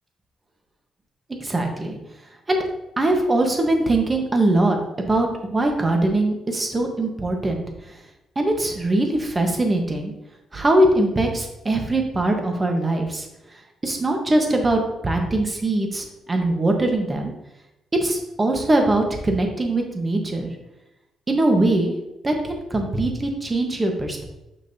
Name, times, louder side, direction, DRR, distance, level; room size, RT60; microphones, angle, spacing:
voice 1, 1.4-2.0 2.5-2.6 3.0-4.8 5.1-8.0 8.3-10.1 10.5-13.3 13.8-17.3 18.0-20.6 21.3-21.9 22.2-24.2, right 2 dB, 25° right, 3 dB, 1.2 m, -22 dB
6.2 x 6.0 x 2.8 m, 0.92 s
cardioid pair, 90°, 0 cm